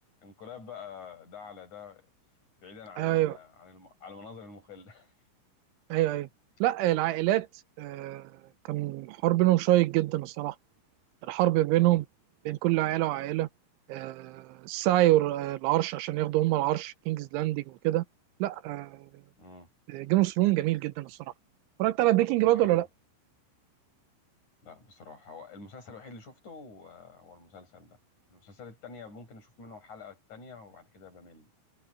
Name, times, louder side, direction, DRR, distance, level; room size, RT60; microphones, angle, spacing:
voice 1, 0.2-2.1 2.6-5.1 6.1-6.2 6.8-7.0 11.8-12.0 19.4-19.7 22.4-22.8 24.6-28.0 28.3-31.5, left 5 dB, 40° left, 8.2 m, -47 dB
voice 2, 3.0-3.4 5.9-6.3 6.6-7.5 7.8-8.3 8.7-10.6 11.2-12.0 12.5-13.5 13.9-18.0 18.4-19.1 19.9-21.2 21.8-22.9, right 16 dB, 85° right, 3.2 m, -26 dB
omnidirectional pair, 5.5 m